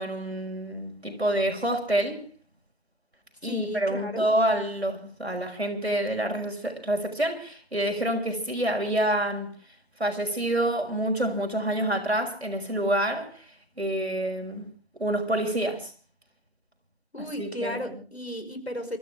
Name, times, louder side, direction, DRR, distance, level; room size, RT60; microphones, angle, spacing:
voice 1, 0.0-2.2 3.4-9.5 10.0-13.4 13.8-14.7 15.0-15.9 17.2-18.0, right 1 dB, 85° right, 5.8 m, -27 dB
voice 2, 3.4-4.3 17.1-19.0, equal, 80° left, 5.2 m, -34 dB
27.5 x 14.0 x 3.6 m
figure-of-eight pair, 180°, 31 cm